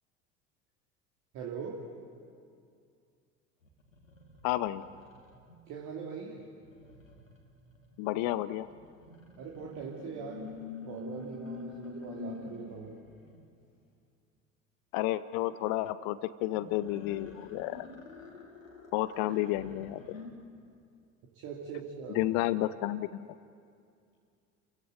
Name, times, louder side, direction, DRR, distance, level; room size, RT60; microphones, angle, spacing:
voice 1, 1.3-1.8 5.7-6.5 9.4-10.5 10.9-13.0 21.3-22.2, right 6 dB, 50° right, -2 dB, 2.8 m, -41 dB
sound 1, 3.6-5.5 6.6-13.4 16.5-20.3, left 3 dB, 80° left, 2.4 m, -47 dB
voice 2, 4.4-4.8 8.0-8.7 14.9-17.9 18.9-20.2 22.1-23.3, left 15 dB, 45° left, 16 dB, 0.7 m, -31 dB
30.0 x 15.5 x 8.3 m, 2.4 s
figure-of-eight pair, 65°, 39 cm